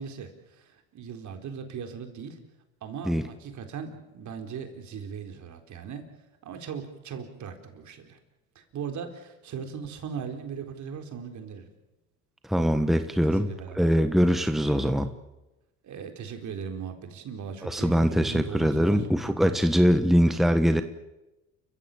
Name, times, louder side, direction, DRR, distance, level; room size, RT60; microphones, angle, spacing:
voice 1, 0.0-2.4 2.8-6.1 6.4-8.2 8.5-11.7 13.2-13.9 15.8-19.1, right 6 dB, 55° right, 5 dB, 4.2 m, -38 dB
voice 2, 12.5-15.1 17.6-20.8, equal, ahead, 8 dB, 1.3 m, -22 dB
29.5 x 15.0 x 8.6 m, 1.0 s
supercardioid pair, 90°, 35 cm